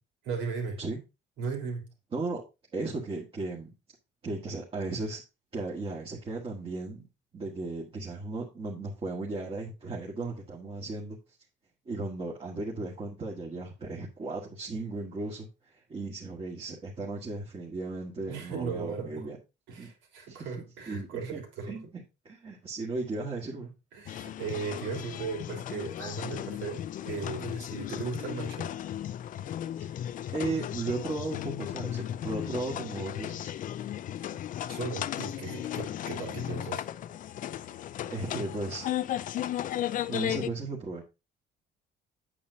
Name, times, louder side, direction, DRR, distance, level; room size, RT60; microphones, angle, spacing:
voice 1, 0.2-0.8 1.4-1.9 18.3-19.3 19.7-21.8 23.9-28.7 34.7-36.8, right 5 dB, 80° right, 3.3 m, -37 dB
voice 2, 2.1-2.4 2.7-3.7 4.2-5.2 5.5-7.1 7.3-11.2 11.9-19.4 19.8-19.9 20.3-20.5 20.9-21.4 21.7-23.7 29.8-29.9 30.3-33.5 34.3-34.4 38.1-38.9 40.1-41.0, right 3 dB, 30° right, 1.7 m, -36 dB
sound 1, 24.1-40.5, left 11 dB, 45° left, 0.4 m, -35 dB
8.5 x 7.9 x 2.7 m
cardioid pair, 140°, 19 cm